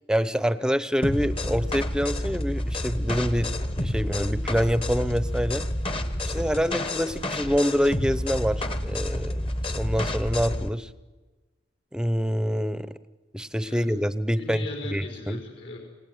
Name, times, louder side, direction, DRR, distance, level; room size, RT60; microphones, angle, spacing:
voice 1, 0.1-5.6 6.2-10.9 11.9-12.9 13.3-14.6 14.9-15.4, equal, 5° right, 14 dB, 0.8 m, -26 dB
sound 1, 1.0-10.7, left 1 dB, 30° left, 1.2 m, -29 dB
voice 2, 14.4-15.8, left 2 dB, 70° left, 1 dB, 4.5 m, -38 dB
28.5 x 18.0 x 9.5 m, 1.3 s
head